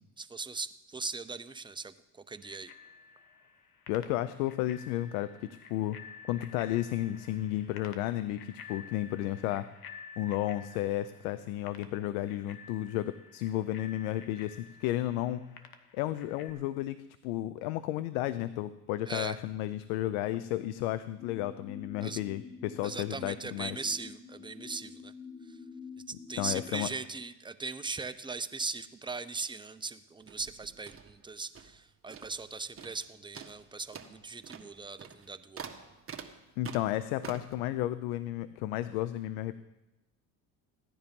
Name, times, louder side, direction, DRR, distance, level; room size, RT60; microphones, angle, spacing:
voice 1, 0.2-2.7 19.1-19.4 22.0-22.2 22.8-25.1 25.4-25.6 26.1-35.7, right 4 dB, 10° right, 10 dB, 0.7 m, -39 dB
Bicycle bell, 2.4-16.5, left 6 dB, 55° left, 1.5 m, -52 dB
voice 2, 3.9-6.0 6.3-9.7 10.2-15.5 15.9-23.8 26.4-26.9 36.6-39.6, left 14 dB, 85° left, 14 dB, 0.7 m, -33 dB
sound 1, 21.2-26.7, left 5 dB, 10° left, 1.7 m, -47 dB
sound 2, 30.2-31.8 32.1-32.5 32.8-33.1 33.3-37.6, right 6 dB, 30° right, 1.5 m, -47 dB
15.5 x 10.0 x 5.3 m, 0.98 s
supercardioid pair, 90°, 43 cm